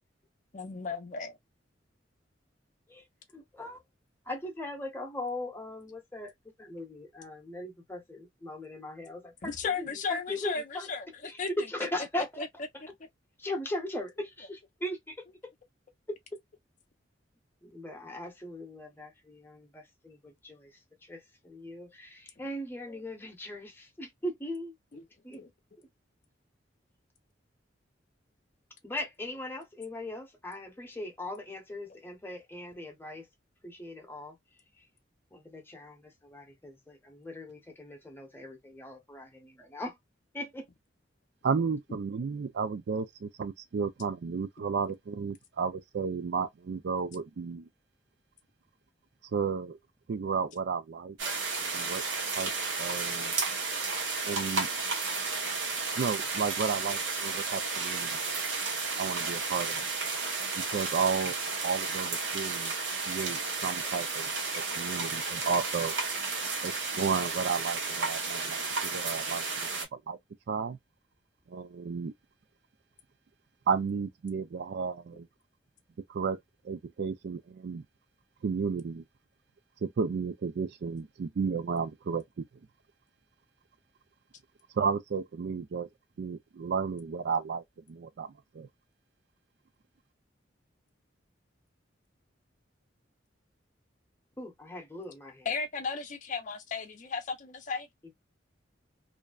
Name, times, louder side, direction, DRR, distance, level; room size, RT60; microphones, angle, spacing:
voice 1, 0.5-1.4 9.4-11.5 12.4-12.5 22.9-23.0 24.9-25.0 25.3-25.5 95.5-97.9, left 5 dB, 45° left, 0.5 m, -35 dB
voice 2, 3.3-3.8 4.3-10.9 11.2-12.4 13.4-15.5 16.1-16.2 17.6-24.7 25.2-25.4 28.8-33.3 33.6-34.4 35.3-40.0 40.3-40.7 94.4-95.5, left 1 dB, 10° left, 0.8 m, -39 dB
voice 3, 41.4-47.7 49.3-49.8 50.1-51.2 51.6-52.0 52.4-52.5 52.8-53.3 54.3-54.7 56.0-58.2 59.0-59.8 60.7-61.4 61.6-62.7 63.1-65.9 66.6-69.5 69.9-70.2 70.5-70.8 71.5-72.1 73.7-75.3 76.1-76.4 76.6-77.8 78.4-79.0 79.8-82.2 84.7-85.9 86.2-87.6 87.9-88.7, right 5 dB, 60° right, 0.4 m, -32 dB
sound 1, 51.2-69.8, right 4 dB, 80° right, 0.9 m, -33 dB
2.5 x 2.1 x 2.3 m
head